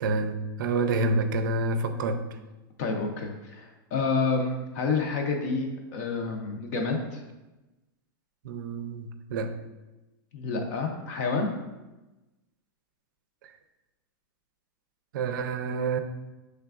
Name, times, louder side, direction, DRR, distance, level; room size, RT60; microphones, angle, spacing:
voice 1, 0.0-2.2 8.4-9.5 15.1-16.0, right 3 dB, 60° right, 8 dB, 0.4 m, -28 dB
voice 2, 2.8-7.2 10.3-11.5, left 4 dB, 45° left, 2 dB, 0.5 m, -29 dB
5.7 x 3.3 x 2.4 m, 1.1 s
supercardioid pair, 165°, 12 cm